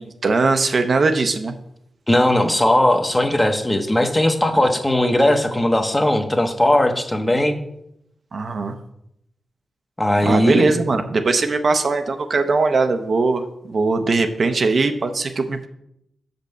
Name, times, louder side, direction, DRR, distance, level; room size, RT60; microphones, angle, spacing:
voice 1, 0.0-1.5 8.3-8.7 10.2-15.7, right 3 dB, 55° right, 6 dB, 0.7 m, -20 dB
voice 2, 2.1-7.6 10.0-10.7, left 1 dB, 15° left, 5 dB, 0.9 m, -18 dB
5.3 x 5.2 x 6.6 m, 0.77 s
cardioid pair, 80°, 0 cm